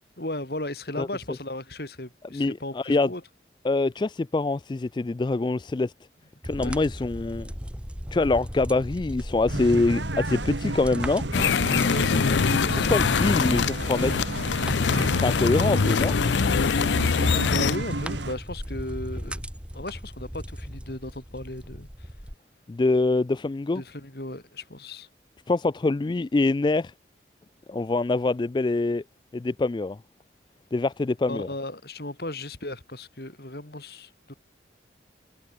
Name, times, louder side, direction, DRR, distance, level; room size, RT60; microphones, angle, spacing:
voice 1, 0.2-3.2 6.6-6.7 11.9-13.0 17.4-19.4 19.7-21.9 23.8-25.1 31.3-34.4, left 1 dB, 60° left, 3.5 m, -36 dB
voice 2, 2.3-3.1 3.6-5.9 6.4-7.5 8.1-11.2 12.9-14.3 15.2-16.1 22.7-23.8 25.5-26.9 27.7-29.0 29.3-30.0 30.7-31.5, left 3 dB, 25° left, 0.3 m, -24 dB
sound 1, 6.4-22.3, equal, 5° right, 3.5 m, -36 dB
sound 2, 9.5-18.3, right 2 dB, 90° right, 2.3 m, -32 dB
sound 3, 11.3-17.8, left 5 dB, 85° left, 0.5 m, -23 dB
head